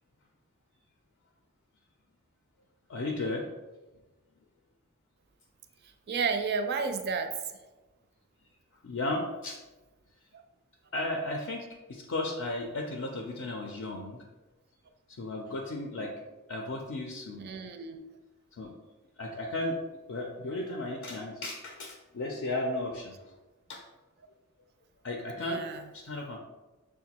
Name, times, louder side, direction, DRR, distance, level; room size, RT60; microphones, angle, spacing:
voice 1, 2.9-3.4 8.8-9.6 10.9-14.2 15.2-16.1 16.5-17.4 18.6-18.7 19.2-19.8 20.1-23.1 23.7-23.8 25.0-25.6 25.9-26.4, left 2 dB, 65° left, 1 dB, 0.5 m, -34 dB
voice 2, 6.1-7.3 17.4-18.0 25.4-25.8, right 5 dB, 50° right, 6 dB, 0.4 m, -31 dB
6.6 x 2.2 x 2.8 m, 1.1 s
head